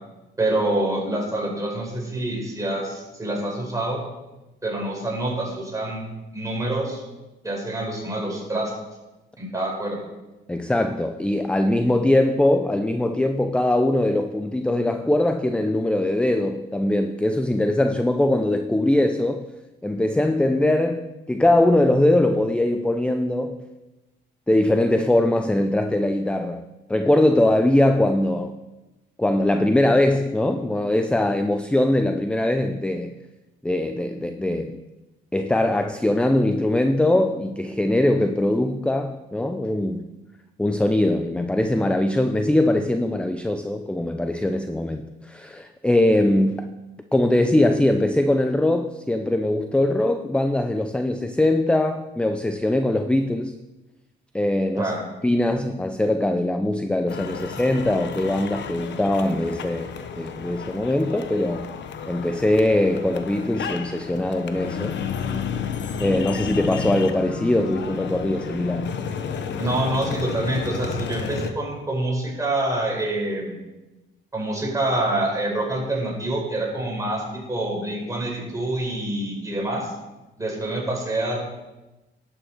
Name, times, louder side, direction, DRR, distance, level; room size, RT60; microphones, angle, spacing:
voice 1, 0.4-4.0 4.6-6.1 6.3-7.0 7.4-8.7 9.4-10.0 54.8-55.0 69.6-73.6 74.3-79.9 80.4-81.5, right 1 dB, 15° right, -2 dB, 4.5 m, -26 dB
voice 2, 10.5-19.5 19.8-23.6 24.5-28.6 29.2-33.1 33.6-34.8 35.3-40.1 40.6-46.7 47.0-53.5 54.3-54.9 55.2-61.7 62.1-65.0 66.0-69.0, left 1 dB, 5° left, 8 dB, 0.5 m, -21 dB
sound 1, 57.1-71.5, left 6 dB, 65° left, 1.0 m, -32 dB
11.5 x 8.8 x 4.7 m, 1.1 s
cardioid pair, 90°, 20 cm